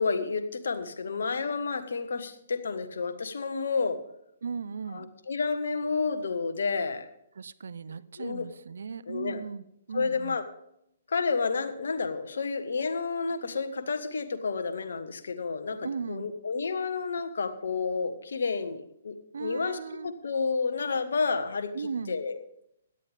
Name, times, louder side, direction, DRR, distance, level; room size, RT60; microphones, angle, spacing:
voice 1, 0.0-4.0 4.9-7.1 8.2-8.5 9.1-9.4 9.9-10.4 11.1-19.8 20.0-21.7 22.1-22.4, left 4 dB, 65° left, 1.4 m, -30 dB
voice 2, 4.4-5.1 7.4-10.4 15.7-16.3 19.3-20.1 21.7-22.1, right 5 dB, 65° right, 0.6 m, -37 dB
17.0 x 12.0 x 3.5 m
figure-of-eight pair, 130°, 0 cm